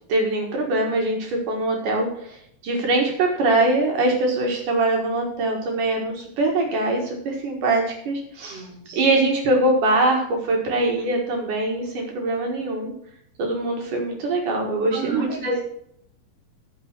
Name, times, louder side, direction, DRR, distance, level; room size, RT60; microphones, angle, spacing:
voice 1, 0.1-8.7 8.9-12.9 13.4-15.6, right 2 dB, 65° right, 1 dB, 3.1 m, -23 dB
voice 2, 8.5-9.0 14.9-15.6, right 4 dB, 15° right, -3 dB, 3.1 m, -32 dB
14.0 x 5.1 x 6.0 m, 0.69 s
omnidirectional pair, 4.0 m